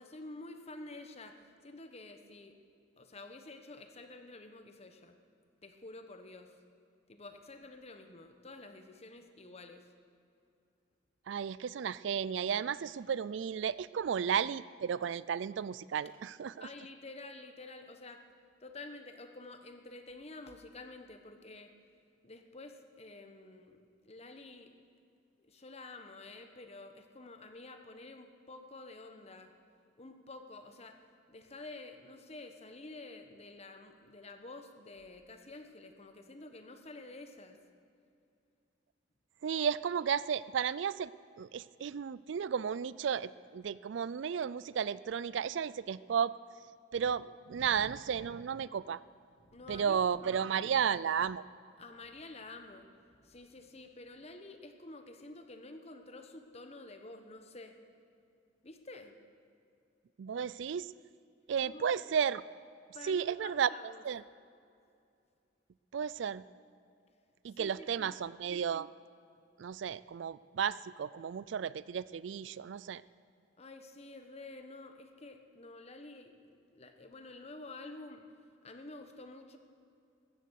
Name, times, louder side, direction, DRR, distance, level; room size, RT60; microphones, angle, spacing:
voice 1, 0.0-2.5 3.0-5.2 5.6-6.5 7.1-9.9 16.6-18.2 18.6-21.7 22.2-23.8 24.0-24.7 25.4-29.5 30.0-31.0 31.3-37.6 49.4-50.0 51.8-57.7 58.6-59.1 61.7-61.9 62.9-64.0 67.6-68.2 73.6-78.2 78.6-79.6, left 2 dB, 35° left, 6 dB, 1.2 m, -49 dB
voice 2, 11.3-16.7 39.4-41.1 41.4-46.3 46.9-49.0 49.7-51.4 60.2-60.9 61.5-62.4 63.0-63.7 64.0-64.2 65.9-66.4 67.4-68.9 69.6-73.0, right 7 dB, 70° right, 18 dB, 0.4 m, -33 dB
14.5 x 14.5 x 6.5 m, 2.5 s
head